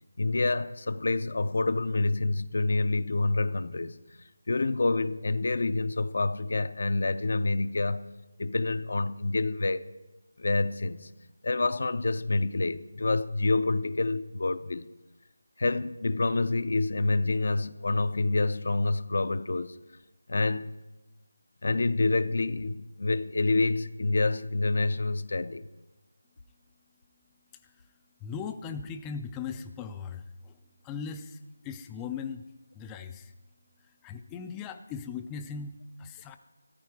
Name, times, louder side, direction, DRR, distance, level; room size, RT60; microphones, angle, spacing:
voice 1, 0.2-4.0 4.5-8.0 8.4-9.8 10.4-11.1 11.4-14.9 15.6-19.7 20.3-20.7 21.6-25.7, left 2 dB, 60° left, 0.5 m, -27 dB
voice 2, 28.2-30.6 30.8-32.4 32.7-33.3 34.0-36.4, left 6 dB, 10° left, 0.3 m, -39 dB
13.5 x 12.5 x 4.7 m
figure-of-eight pair, 170°, 0 cm